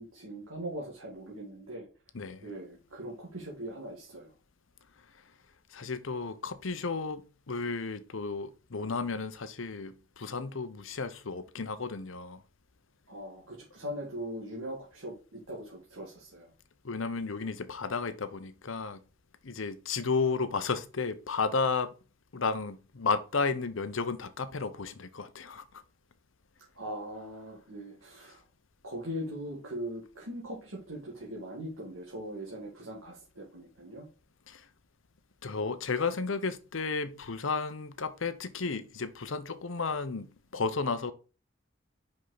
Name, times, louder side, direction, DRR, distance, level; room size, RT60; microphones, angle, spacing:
voice 1, 0.0-1.9 2.4-4.3 13.1-16.5 26.8-28.4 28.8-34.1, equal, 80° right, 2.1 m, -40 dB
voice 2, 2.1-2.4 5.7-12.4 16.8-19.0 19.4-21.9 22.3-25.8 34.5-34.7 35.4-41.1, left 4 dB, 70° left, 0.8 m, -33 dB
5.7 x 5.3 x 4.0 m
head